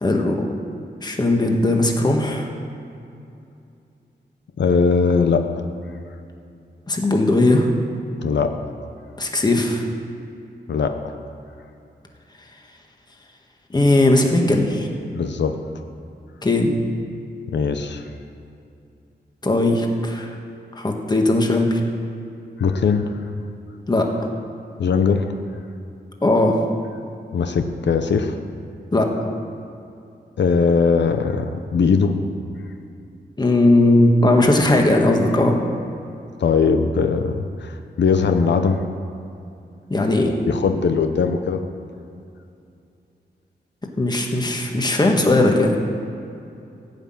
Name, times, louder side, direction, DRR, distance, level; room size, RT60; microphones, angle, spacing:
voice 1, 0.0-0.5 1.0-2.5 6.9-7.7 9.2-9.8 13.7-14.9 16.4-16.8 19.4-20.3 20.7-21.8 23.9-24.3 26.2-26.6 28.9-29.1 33.4-35.6 39.9-40.3 44.0-45.8, left 2 dB, 25° left, 2 dB, 1.4 m, -18 dB
voice 2, 4.6-5.6 8.2-8.6 10.7-11.1 15.1-15.6 17.5-18.0 22.6-23.1 24.8-25.2 27.3-28.4 30.4-32.2 36.4-38.9 40.2-41.6, left 5 dB, 85° left, 7 dB, 0.8 m, -20 dB
15.5 x 5.9 x 8.8 m, 2.6 s
wide cardioid pair, 140°, 18 cm